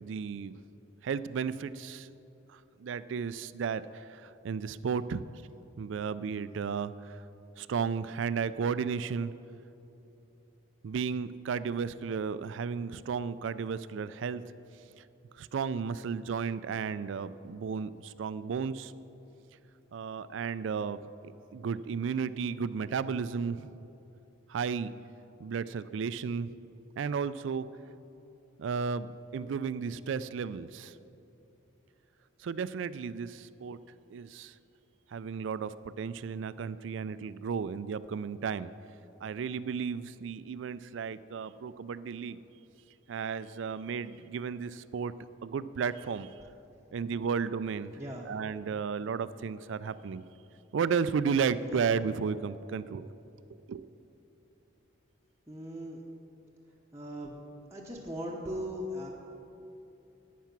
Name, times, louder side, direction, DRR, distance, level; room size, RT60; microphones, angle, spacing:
voice 1, 0.0-0.5 1.0-2.1 2.5-5.2 5.8-7.2 7.6-9.3 10.8-14.4 15.4-18.9 19.9-21.0 21.2-23.8 24.5-24.9 25.4-26.5 27.0-27.7 28.6-30.9 32.4-33.8 34.1-34.5 35.1-38.7 39.2-42.4 43.1-45.1 45.4-46.3 46.9-47.9 48.3-50.2 50.7-53.1 53.7-53.8, right 6 dB, 75° right, 16 dB, 0.3 m, -33 dB
voice 2, 48.0-48.3 51.7-51.9 55.5-56.0 56.9-57.4 57.7-59.1, equal, 15° right, -4 dB, 0.8 m, -39 dB
10.5 x 9.3 x 5.9 m, 2.9 s
head